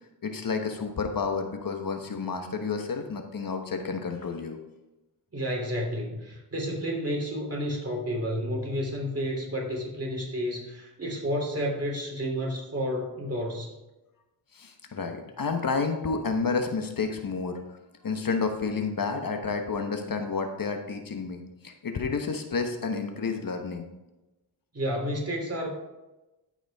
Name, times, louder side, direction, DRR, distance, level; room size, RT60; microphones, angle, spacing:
voice 1, 0.2-4.6 14.5-17.6 18.0-23.9, left 4 dB, 55° left, 5 dB, 1.1 m, -30 dB
voice 2, 5.3-13.7 24.7-25.7, equal, 35° right, -1 dB, 3.1 m, -31 dB
13.0 x 5.0 x 3.5 m, 1.0 s
cardioid pair, 55°, 42 cm